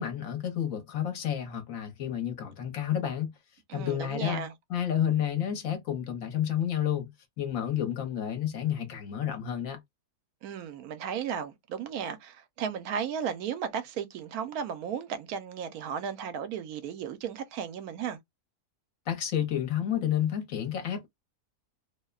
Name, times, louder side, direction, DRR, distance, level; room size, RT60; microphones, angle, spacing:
voice 1, 0.0-3.3 3.7-4.4 4.7-7.1 7.4-9.8 19.1-21.1, left 10 dB, 65° left, 1.1 m, -30 dB
voice 2, 3.7-4.5 10.4-18.2, right 7 dB, 80° right, 1.1 m, -35 dB
2.8 x 2.1 x 2.3 m
omnidirectional pair, 1.6 m